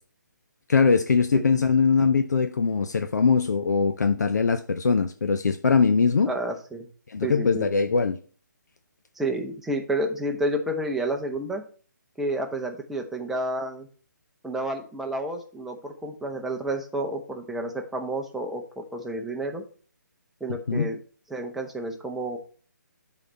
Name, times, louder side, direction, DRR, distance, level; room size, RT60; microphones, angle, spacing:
voice 1, 0.7-6.3 7.1-8.2 20.7-20.9, left 5 dB, 60° left, 0.7 m, -22 dB
voice 2, 6.3-6.9 7.2-7.7 9.2-11.6 12.2-13.9 14.4-19.6 20.4-21.0 21.3-22.4, right 1 dB, 5° right, 0.9 m, -30 dB
11.0 x 4.1 x 4.3 m
figure-of-eight pair, 145°, 10 cm